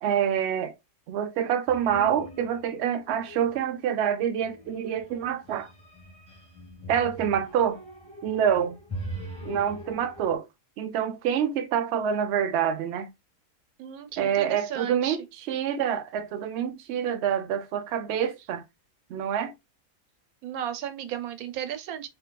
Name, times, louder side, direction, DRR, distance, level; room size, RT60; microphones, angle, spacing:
voice 1, 0.0-0.7 1.1-5.7 6.9-7.8 8.2-8.8 9.4-10.5 10.8-13.1 14.2-18.6 19.1-19.5, right 9 dB, 65° right, 0.7 m, -27 dB
sound 1, 1.7-2.7 3.0-3.6 4.4-10.4, equal, 5° left, 1.3 m, -41 dB
voice 2, 13.8-15.2 20.4-22.1, right 10 dB, 85° right, 1.2 m, -34 dB
4.4 x 2.7 x 2.2 m
omnidirectional pair, 1.5 m